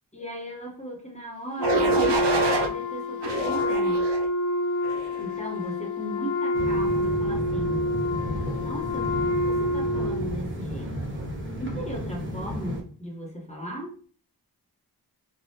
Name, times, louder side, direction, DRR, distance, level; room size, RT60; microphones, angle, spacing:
voice 1, 0.1-4.2 5.2-7.9 8.6-10.9 11.6-13.9, equal, 15° left, 0 dB, 0.9 m, -37 dB
Wind instrument woodwind instrument, 1.6-10.4, left 1 dB, 50° left, 0.5 m, -27 dB
sound 1, 1.6-2.7 3.2-4.3 4.8-5.2, right 3 dB, 85° right, 0.6 m, -27 dB
sound 2, 6.5-12.8, equal, 30° right, 0.9 m, -33 dB
3.4 x 2.3 x 2.7 m, 0.43 s
cardioid pair, 55°, 41 cm